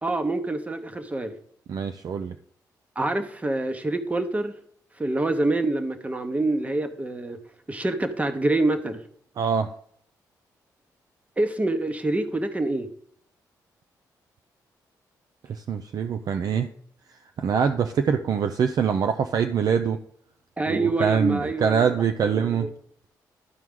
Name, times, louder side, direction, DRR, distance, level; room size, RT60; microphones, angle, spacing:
voice 1, 0.0-1.3 3.0-4.6 5.0-7.4 7.7-9.0 11.4-12.9 20.6-22.0 22.2-22.7, right 2 dB, 20° right, 8 dB, 1.0 m, -26 dB
voice 2, 1.7-2.4 9.4-9.7 15.5-16.7 17.1-20.0 20.7-22.7, right 7 dB, 60° right, 7 dB, 0.5 m, -24 dB
13.0 x 4.6 x 3.7 m, 0.64 s
cardioid pair, 80°, 7 cm